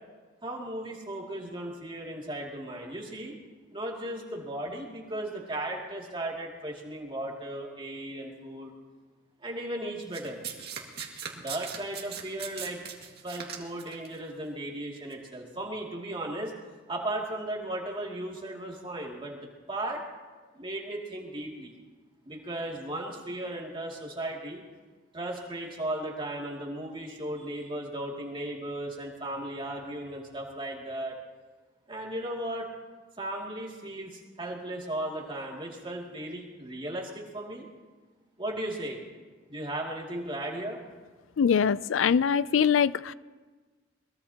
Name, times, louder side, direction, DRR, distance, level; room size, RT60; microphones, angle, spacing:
voice 1, 0.4-3.4 3.7-8.7 9.4-10.4 11.3-12.8 13.2-16.5 16.9-20.0 20.5-21.7 22.3-24.6 25.1-31.2 31.9-32.7 33.2-37.7 38.4-39.0 39.5-40.8, right 1 dB, 25° right, 2.5 m, -36 dB
Domestic sounds home sounds, 10.1-14.1 15.0-15.1, right 8 dB, 55° right, 2.0 m, -39 dB
voice 2, 41.4-43.1, left 7 dB, 75° left, 0.4 m, -23 dB
22.5 x 21.5 x 2.9 m
head